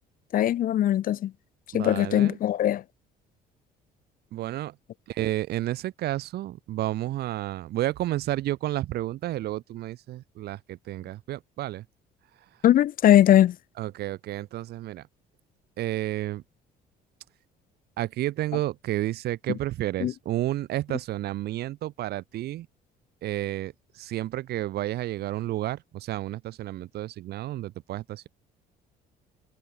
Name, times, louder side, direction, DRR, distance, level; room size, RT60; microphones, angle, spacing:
voice 1, 0.3-1.3 1.7-2.8 12.6-13.5 20.0-20.1, left 12 dB, 55° left, 0.9 m, -20 dB
voice 2, 1.7-2.4 4.3-4.8 5.1-11.9 13.8-15.1 15.8-16.4 18.0-22.7 23.2-28.3, right 14 dB, 70° right, 2.0 m, -31 dB
cardioid pair, 110°, 17 cm